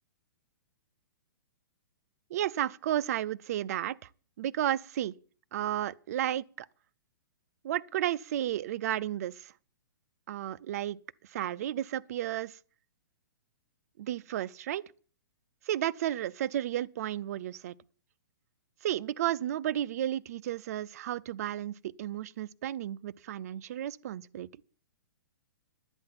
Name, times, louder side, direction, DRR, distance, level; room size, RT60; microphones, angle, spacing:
voice 1, 2.3-4.1 4.4-5.1 5.5-6.7 7.6-9.5 10.3-11.0 11.3-12.6 14.0-14.8 15.7-17.7 18.8-24.5, right 12 dB, 45° right, 0.5 m, -33 dB
11.0 x 8.6 x 7.4 m
hypercardioid pair, 160°, 12 cm